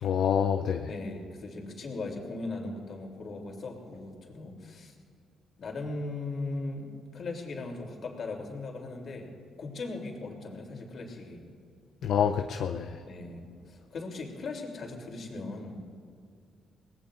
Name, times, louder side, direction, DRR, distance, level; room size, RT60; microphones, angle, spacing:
voice 1, 0.0-0.9 12.0-13.0, left 8 dB, 70° left, 5 dB, 0.6 m, -27 dB
voice 2, 0.9-4.9 5.6-9.3 9.6-11.5 13.0-15.8, left 3 dB, 55° left, 0 dB, 3.3 m, -38 dB
23.5 x 19.0 x 2.6 m, 2.3 s
cardioid pair, 90°, 0 cm